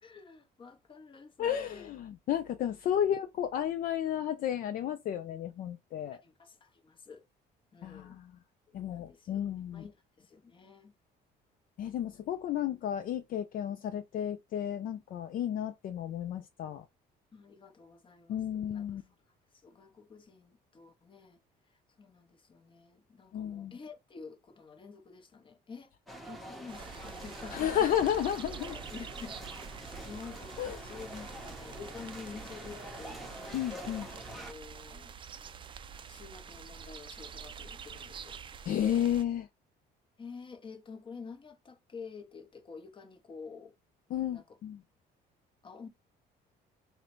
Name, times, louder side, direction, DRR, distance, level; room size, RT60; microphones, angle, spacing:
voice 1, 0.0-1.9 6.2-7.3 7.7-8.2 8.7-9.4 9.7-10.9 17.3-19.0 19.6-21.4 22.0-25.9 26.3-27.9 28.7-33.3 34.3-35.1 36.1-38.4 38.9-39.1 40.2-43.7 44.3-44.6 45.6-45.9, left 5 dB, 30° left, 0.8 m, -49 dB
voice 2, 1.4-6.2 7.8-8.3 8.7-9.9 11.8-16.8 18.3-19.0 23.3-23.7 27.5-28.8 30.6-30.8 33.5-34.1 38.7-39.5 44.1-44.8, left 10 dB, 55° left, 0.4 m, -32 dB
sound 1, 26.1-34.5, equal, ahead, 0.8 m, -46 dB
sound 2, 26.7-39.2, right 7 dB, 30° right, 0.4 m, -47 dB
3.8 x 2.2 x 4.4 m
cardioid pair, 110°, 17 cm